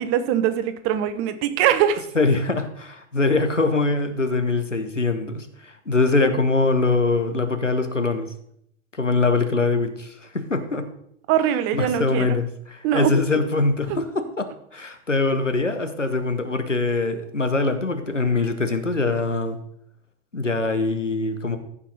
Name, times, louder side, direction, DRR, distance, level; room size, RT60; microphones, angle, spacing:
voice 1, 0.0-2.0 11.3-12.3 12.8-13.1, right 10 dB, 35° right, 11 dB, 1.0 m, -22 dB
voice 2, 2.1-8.3 9.0-10.9 11.7-19.6 20.3-21.6, left 3 dB, 90° left, 8 dB, 1.2 m, -23 dB
15.0 x 5.6 x 4.2 m, 0.70 s
figure-of-eight pair, 90°, 36 cm